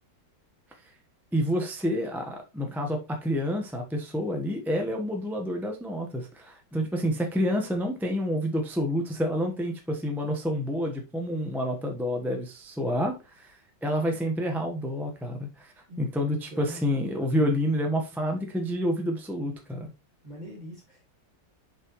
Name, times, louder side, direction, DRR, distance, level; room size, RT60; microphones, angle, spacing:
voice 1, 1.3-15.7 16.0-19.9, equal, ahead, 2 dB, 0.7 m, -28 dB
voice 2, 16.5-16.9 20.2-21.1, equal, 25° right, -3 dB, 2.5 m, -43 dB
6.6 x 5.5 x 3.1 m, 0.29 s
omnidirectional pair, 1.9 m